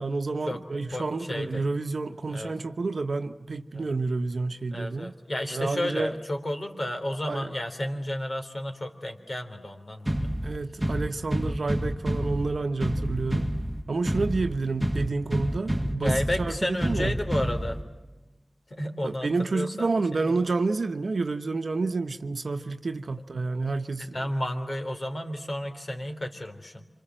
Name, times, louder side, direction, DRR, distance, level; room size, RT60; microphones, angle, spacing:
voice 1, 0.0-5.1 5.5-6.1 7.3-7.5 10.4-13.5 13.9-17.1 19.0-24.2, right 3 dB, 70° right, 1.1 m, -29 dB
voice 2, 0.9-1.7 2.3-2.5 3.7-3.9 4.7-10.4 16.0-17.8 18.7-20.4 24.1-26.9, left 1 dB, 45° left, 3.6 m, -32 dB
sound 1, 10.1-18.1, equal, 5° right, 1.7 m, -29 dB
27.5 x 26.5 x 7.7 m
wide cardioid pair, 65°, 0 cm